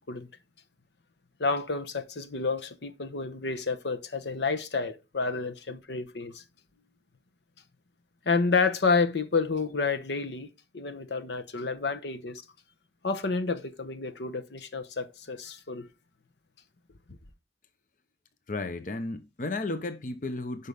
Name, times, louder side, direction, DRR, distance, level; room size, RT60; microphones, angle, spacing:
voice 1, 1.4-6.4 8.3-10.5 10.7-12.4 13.0-15.9 17.1-17.2, left 4 dB, 75° left, 0.9 m, -29 dB
voice 2, 18.5-20.7, left 2 dB, 45° left, 0.7 m, -33 dB
10.5 x 5.6 x 3.5 m
head